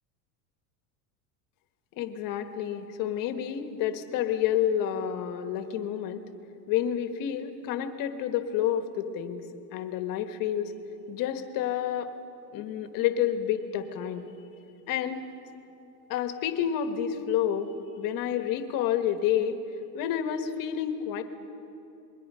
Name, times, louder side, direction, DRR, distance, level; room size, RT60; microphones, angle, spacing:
voice 1, 1.9-6.2 6.7-10.7 11.1-12.1 12.5-14.3 14.9-15.3 16.1-19.6 19.9-21.2, left 9 dB, 45° left, 8 dB, 1.4 m, -29 dB
27.0 x 21.5 x 5.6 m, 2.8 s
cardioid pair, 170°, 47 cm